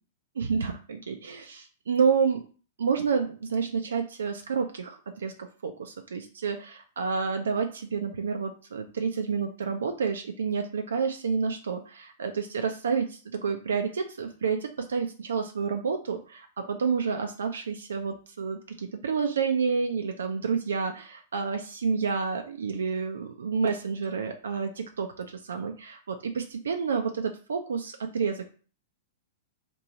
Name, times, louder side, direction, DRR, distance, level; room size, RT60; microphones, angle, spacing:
voice 1, 0.4-2.4 2.8-28.5, right 5 dB, 70° right, 5 dB, 0.4 m, -29 dB
3.0 x 2.6 x 4.0 m, 0.39 s
figure-of-eight pair, 105°, 0 cm